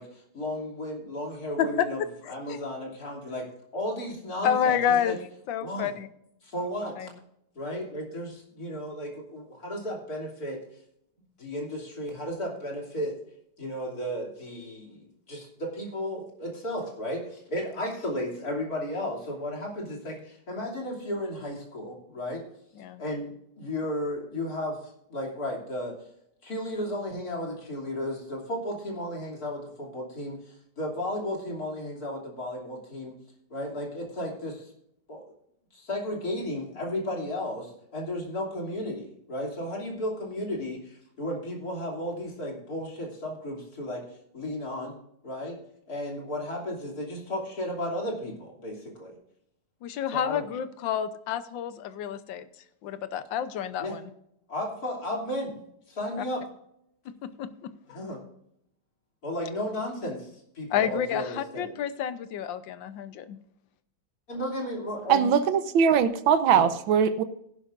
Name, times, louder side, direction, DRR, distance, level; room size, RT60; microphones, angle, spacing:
voice 1, 0.0-2.0 2.3-3.5 3.7-5.2 5.6-5.9 6.4-7.1 7.5-10.6 11.4-13.2 13.6-22.4 23.0-23.3 23.6-26.0 26.4-33.1 33.5-34.7 35.1-35.3 35.7-44.0 44.3-45.0 45.2-45.6 45.9-49.2 50.1-50.5 53.8-54.0 54.5-55.6 55.9-56.4 57.9-58.2 59.2-60.3 60.5-61.8 64.3-65.2 66.5-66.7, left 1 dB, 45° left, 3.4 m, -34 dB
voice 2, 2.2-2.6 4.4-5.2 5.5-6.1 7.0-7.1 22.8-23.0 49.8-52.5 52.8-54.1 56.2-56.3 57.1-58.0 60.7-63.4, left 9 dB, 70° left, 1.5 m, -29 dB
voice 3, 65.1-67.2, right 7 dB, 80° right, 1.6 m, -21 dB
16.5 x 11.0 x 2.5 m
omnidirectional pair, 2.2 m